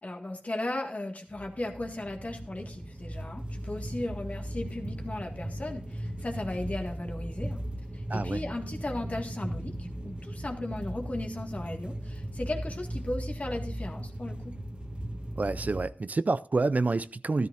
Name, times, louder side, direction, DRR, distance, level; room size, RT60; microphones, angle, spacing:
voice 1, 0.0-7.6 7.9-14.5, left 1 dB, 50° left, 1.8 m, -36 dB
sound 1, 1.3-15.9, right 1 dB, 35° right, 1.5 m, -37 dB
voice 2, 8.1-8.4 15.4-17.5, right 3 dB, 55° right, 0.4 m, -28 dB
13.0 x 13.0 x 2.6 m
cardioid pair, 45°, 3 cm